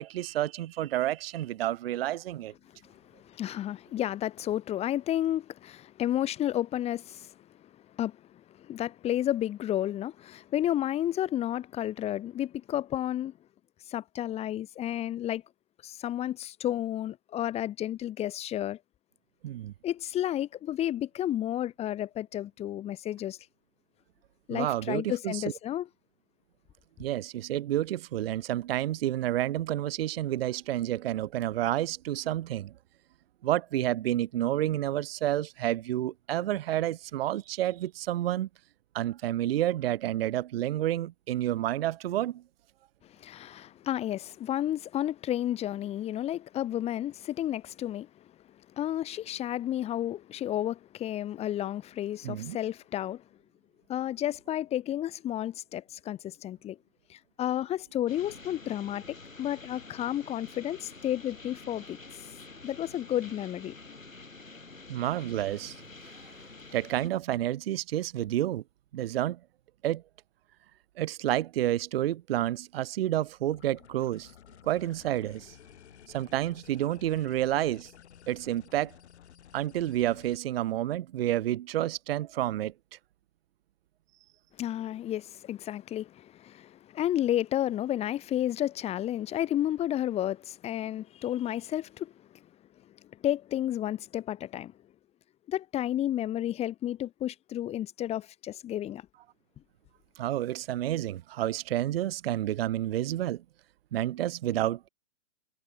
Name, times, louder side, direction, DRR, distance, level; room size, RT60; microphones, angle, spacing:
voice 1, 0.0-2.5 19.4-19.7 24.5-25.4 27.0-32.7 33.4-38.5 38.9-42.4 52.2-52.6 64.9-65.8 66.7-68.6 68.9-69.4 69.8-70.0 71.0-74.3 74.6-75.6 76.1-77.9 78.3-78.9 79.5-82.7 100.2-103.4 103.9-104.9, right 13 dB, 50° right, 0.7 m, -29 dB
voice 2, 2.8-7.3 7.9-8.2 8.5-13.3 13.9-15.4 15.8-18.8 19.8-23.4 24.5-25.9 43.2-48.1 48.8-53.2 53.9-56.8 57.1-62.0 62.6-63.8 84.6-92.1 93.2-94.7 95.5-99.0, left 12 dB, 15° left, 1.2 m, -31 dB
sound 1, 58.1-67.1, left 3 dB, 90° left, 5.5 m, -48 dB
sound 2, 73.5-80.4, left 10 dB, 60° left, 4.7 m, -53 dB
figure-of-eight pair, 125°, 38 cm